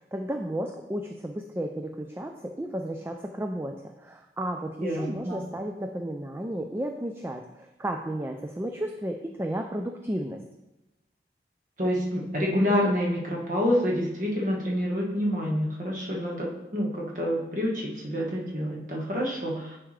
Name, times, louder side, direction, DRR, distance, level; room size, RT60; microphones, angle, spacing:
voice 1, 0.0-10.4, right 1 dB, 15° right, 4 dB, 0.3 m, -33 dB
voice 2, 4.8-5.4 11.8-19.8, equal, 45° right, -2 dB, 1.5 m, -27 dB
9.8 x 4.6 x 3.2 m, 1.0 s
head